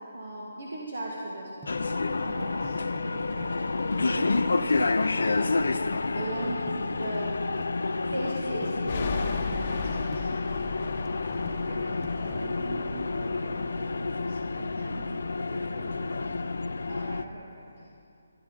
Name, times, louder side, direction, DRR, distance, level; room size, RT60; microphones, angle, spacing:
voice 1, 0.0-7.4 8.1-10.4 16.9-17.9, right 1 dB, 80° right, -3 dB, 1.9 m, -38 dB
sound 1, 1.6-7.7 8.1-9.2 9.5-12.3, right 7 dB, 15° right, 0.5 m, -48 dB
sound 2, 1.7-17.2, left 3 dB, 75° left, 0.5 m, -29 dB
sound 3, 8.9-17.4, left 4 dB, 40° left, 0.8 m, -38 dB
voice 2, 11.5-16.3, right 2 dB, 60° right, -3 dB, 3.3 m, -43 dB
13.5 x 10.5 x 5.6 m, 2.5 s
hypercardioid pair, 160°, 0 cm